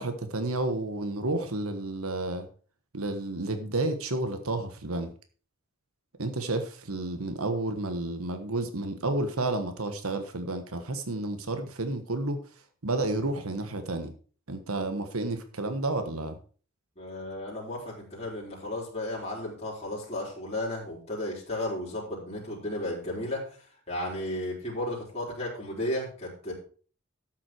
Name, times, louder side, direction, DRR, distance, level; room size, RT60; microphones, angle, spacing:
voice 1, 0.0-2.5 2.9-5.1 6.2-12.4 12.8-14.1 14.5-16.4, right 2 dB, 80° right, 8 dB, 1.4 m, -31 dB
voice 2, 17.0-23.4 23.9-26.5, left 1 dB, 30° left, -5 dB, 4.2 m, -34 dB
12.5 x 7.6 x 4.6 m, 0.41 s
head